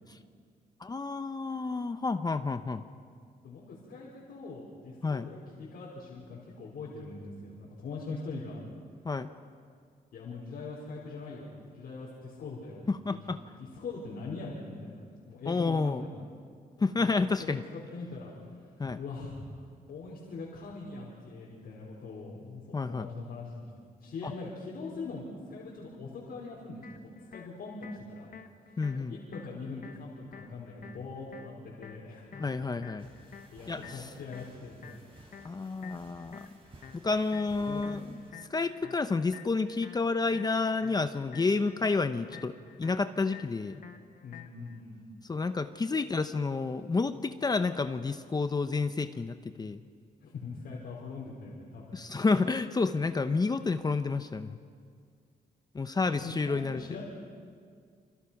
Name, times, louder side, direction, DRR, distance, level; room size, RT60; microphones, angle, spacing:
voice 1, 0.8-2.8 5.0-5.3 9.0-9.3 12.9-13.4 15.5-16.1 16.8-17.6 18.8-19.0 22.7-23.1 24.2-24.3 28.8-29.1 32.3-33.1 33.7-34.1 35.4-36.4 36.9-38.2 38.5-43.8 45.3-49.8 51.9-54.6 55.7-56.8, left 4 dB, 25° left, 9 dB, 0.8 m, -30 dB
voice 2, 3.4-8.6 10.1-16.1 16.8-17.1 17.4-18.3 18.9-19.4 19.9-23.7 24.0-28.3 28.9-32.8 33.5-35.1 37.6-37.8 44.2-45.0 50.2-52.0 56.2-57.0, left 3 dB, 80° left, -5 dB, 5.1 m, -42 dB
sound 1, 26.8-44.8, left 7 dB, 60° left, 1.5 m, -51 dB
sound 2, 33.0-38.3, right 2 dB, 35° right, 5.9 m, -56 dB
29.0 x 27.0 x 5.9 m, 2.1 s
cardioid pair, 135°, 16 cm